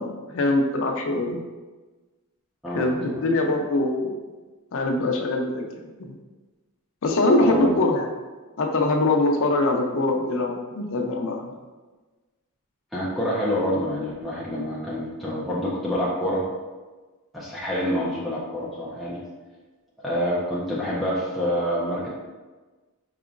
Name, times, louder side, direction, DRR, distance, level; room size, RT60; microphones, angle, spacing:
voice 1, 0.0-1.4 2.7-4.1 4.7-6.2 7.0-8.1 8.6-11.5, left 2 dB, 60° left, 2 dB, 0.5 m, -23 dB
voice 2, 2.6-3.3 7.4-7.7 12.9-16.5 17.3-19.2 20.0-22.1, equal, ahead, -8 dB, 0.5 m, -27 dB
4.8 x 2.9 x 2.4 m, 1.3 s
head